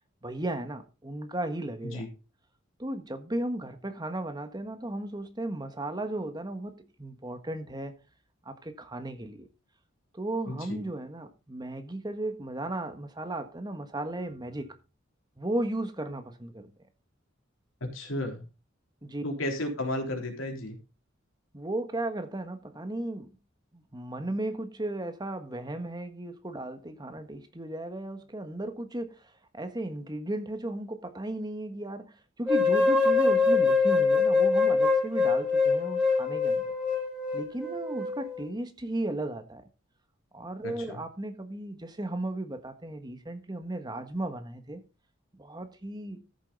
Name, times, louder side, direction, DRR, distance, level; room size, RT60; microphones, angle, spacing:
voice 1, 0.2-2.0 2.8-7.9 8.4-9.5 10.1-14.7 15.4-16.7 19.0-19.2 21.5-23.3 23.7-36.7 37.3-39.6 40.3-44.8 45.3-46.2, right 1 dB, 20° right, 1.4 m, -35 dB
voice 2, 10.5-10.8 17.8-18.4 19.2-20.8 40.6-41.0, left 1 dB, 90° left, 3.6 m, -33 dB
sound 1, 32.5-38.5, left 4 dB, 5° right, 3.1 m, -24 dB
14.0 x 7.5 x 4.0 m
head